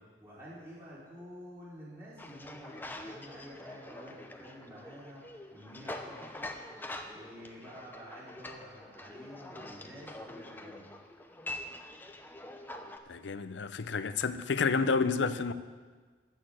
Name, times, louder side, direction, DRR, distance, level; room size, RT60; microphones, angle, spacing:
voice 1, 0.2-6.4 7.1-10.8, equal, 15° right, 4.7 m, -49 dB
sound 1, 2.2-13.0, left 1 dB, 10° left, 0.7 m, -45 dB
voice 2, 13.1-15.5, left 4 dB, 85° left, 0.6 m, -30 dB
13.0 x 6.7 x 7.7 m
head